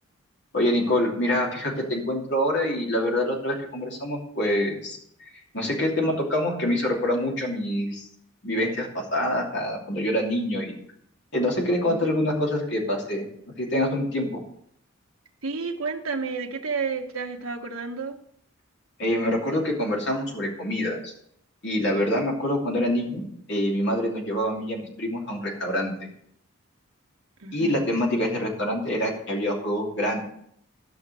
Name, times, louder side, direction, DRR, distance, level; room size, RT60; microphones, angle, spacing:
voice 1, 0.5-8.0 8.4-10.8 11.3-13.2 13.6-14.4 19.0-21.1 21.6-23.2 23.5-25.9 27.5-30.2, left 1 dB, 55° left, -1 dB, 2.9 m, -26 dB
voice 2, 15.4-18.2 22.4-22.8 24.3-24.5 27.4-27.8, right 4 dB, 80° right, 3 dB, 1.4 m, -32 dB
13.5 x 6.1 x 6.2 m, 0.69 s
head